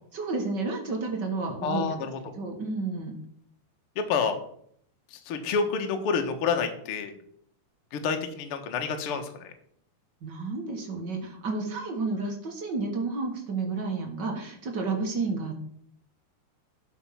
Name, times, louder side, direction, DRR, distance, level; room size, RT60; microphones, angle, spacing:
voice 1, 0.1-1.8 2.4-3.2 10.2-15.6, right 3 dB, 50° right, 1 dB, 1.3 m, -31 dB
voice 2, 1.6-2.2 3.9-4.4 5.1-7.1 7.9-9.5, left 5 dB, 60° left, 6 dB, 1.5 m, -28 dB
12.0 x 5.7 x 5.8 m, 0.66 s
omnidirectional pair, 4.4 m